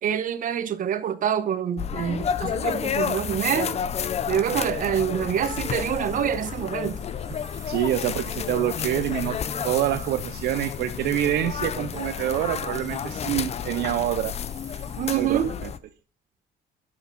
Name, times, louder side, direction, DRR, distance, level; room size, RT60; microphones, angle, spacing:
voice 1, 0.0-3.8 4.3-7.0 15.0-15.5, right 9 dB, 55° right, 0.9 m, -26 dB
sound 1, 1.8-15.8, left 8 dB, 40° left, 0.6 m, -31 dB
sound 2, 5.3-15.1, right 2 dB, 15° right, 2.4 m, -50 dB
voice 2, 7.7-9.4 9.6-14.3 15.1-15.7, right 13 dB, 75° right, 0.5 m, -26 dB
6.9 x 6.4 x 5.3 m
cardioid pair, 110°, 17 cm